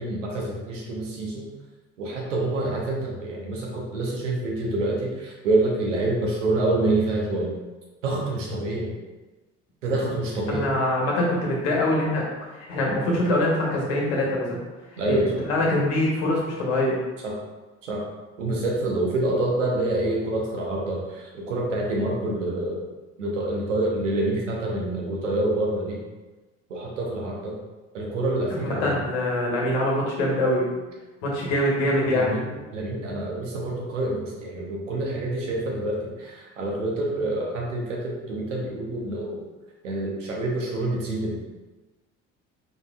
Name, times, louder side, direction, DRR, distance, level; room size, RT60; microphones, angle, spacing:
voice 1, 0.0-1.5 2.0-7.5 8.0-8.9 9.8-10.7 13.0-13.2 15.0-15.4 17.2-17.4 17.8-18.1 18.4-22.9 23.2-26.0 26.7-27.5 27.9-29.0 31.2-31.5 32.0-39.4 39.8-41.6, right 2 dB, 80° right, -2 dB, 1.0 m, -27 dB
voice 2, 10.5-14.6 14.9-15.2 15.4-17.0 28.5-30.6 31.2-32.4, left 1 dB, 70° left, -3 dB, 1.3 m, -24 dB
5.2 x 4.2 x 2.5 m, 1.2 s
figure-of-eight pair, 55°, 37 cm